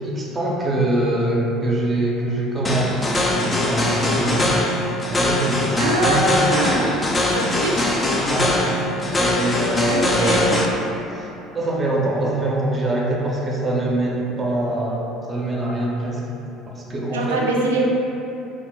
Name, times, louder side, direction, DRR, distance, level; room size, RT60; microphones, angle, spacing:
voice 1, 0.0-3.0 3.3-4.5 4.7-6.2 8.2-10.6 11.1-11.3 11.5-16.2 16.7-17.4, right 1 dB, 25° right, -3 dB, 0.6 m, -24 dB
sound 1, 2.6-10.7, left 1 dB, 20° left, 0.4 m, -21 dB
voice 2, 5.8-6.9 7.3-7.9 9.9-10.6 17.1-17.8, right 2 dB, 85° right, -2 dB, 0.3 m, -23 dB
2.3 x 2.0 x 3.7 m, 2.9 s
hypercardioid pair, 65°, 0 cm